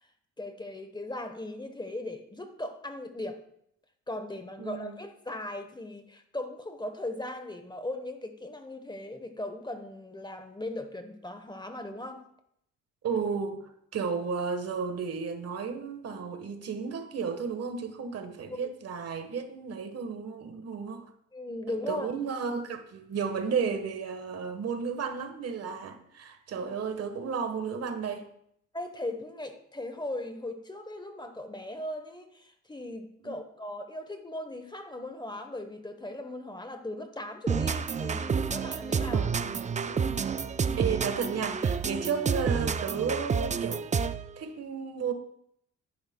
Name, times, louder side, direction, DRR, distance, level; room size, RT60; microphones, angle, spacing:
voice 1, 0.4-3.4 4.1-12.2 18.5-18.7 21.3-22.1 28.7-39.2 39.9-40.2, left 1 dB, 15° left, 8 dB, 0.9 m, -38 dB
voice 2, 4.6-5.0 13.0-21.1 21.9-28.3 33.2-33.4 39.0-39.3 40.8-43.8 44.4-45.1, right 6 dB, 55° right, 7 dB, 1.3 m, -33 dB
sound 1, 37.5-44.3, right 6 dB, 25° right, 0.4 m, -29 dB
12.0 x 10.5 x 2.2 m, 0.72 s
cardioid pair, 90°, 30 cm